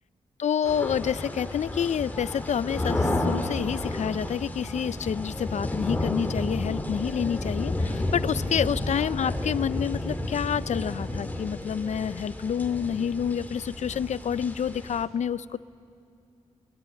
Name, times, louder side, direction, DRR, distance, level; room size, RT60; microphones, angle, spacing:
voice 1, 0.4-15.6, left 8 dB, 70° left, 17 dB, 0.5 m, -28 dB
sound 1, 0.6-15.0, left 1 dB, 15° left, 2.6 m, -31 dB
26.0 x 22.5 x 9.0 m, 2.4 s
cardioid pair, 90°, 12 cm